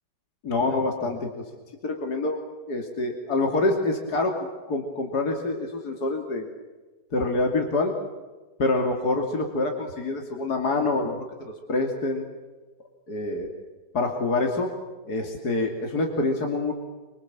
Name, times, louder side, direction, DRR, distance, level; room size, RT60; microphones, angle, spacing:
voice 1, 0.4-1.5 1.8-6.5 7.1-7.9 8.6-12.3 13.1-13.5 13.9-14.7 15.0-16.7, left 2 dB, 65° left, 2 dB, 3.3 m, -26 dB
26.5 x 25.5 x 7.6 m, 1.2 s
omnidirectional pair, 1.8 m